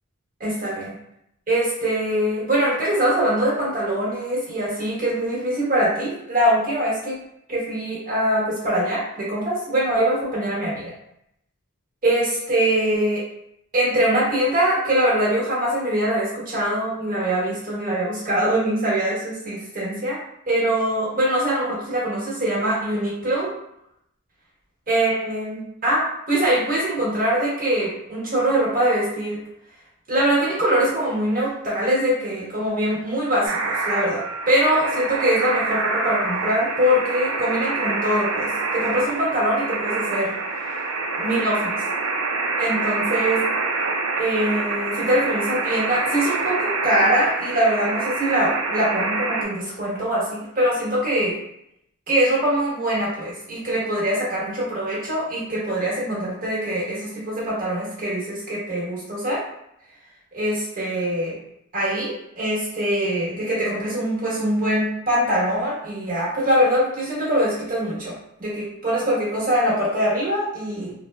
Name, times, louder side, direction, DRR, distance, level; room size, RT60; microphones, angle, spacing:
voice 1, 0.4-0.9 1.5-7.2 7.5-10.9 12.0-13.2 13.7-20.2 20.5-23.5 24.9-29.4 30.1-40.3 41.2-41.8 42.6-43.4 44.2-51.4 52.1-59.4 60.3-61.3 61.7-68.1 68.4-70.9, right 1 dB, 40° right, -7 dB, 1.2 m, -23 dB
sound 1, 33.4-49.4, right 3 dB, 70° right, 0.5 m, -26 dB
3.5 x 2.0 x 2.3 m, 0.77 s
head